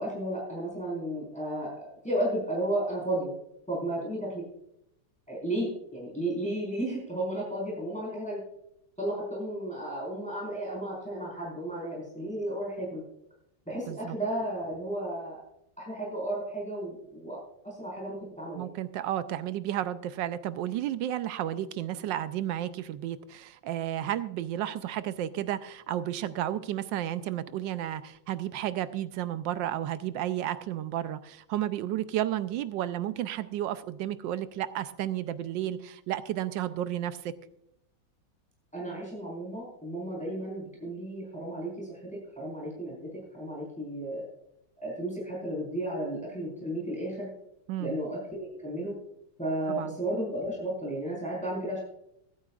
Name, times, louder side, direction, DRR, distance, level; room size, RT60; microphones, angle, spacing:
voice 1, 0.0-3.3 3.7-4.4 5.3-8.4 9.0-13.0 13.7-15.4 15.8-17.4 17.6-18.7 38.7-42.0 42.4-44.3 44.8-47.3 47.8-48.9 49.4-51.8, right 1 dB, 5° left, -4 dB, 4.5 m, -33 dB
voice 2, 18.5-37.3 47.7-48.0 49.7-49.9, right 12 dB, 90° right, 13 dB, 1.3 m, -32 dB
23.0 x 8.9 x 2.4 m, 0.79 s
omnidirectional pair, 2.0 m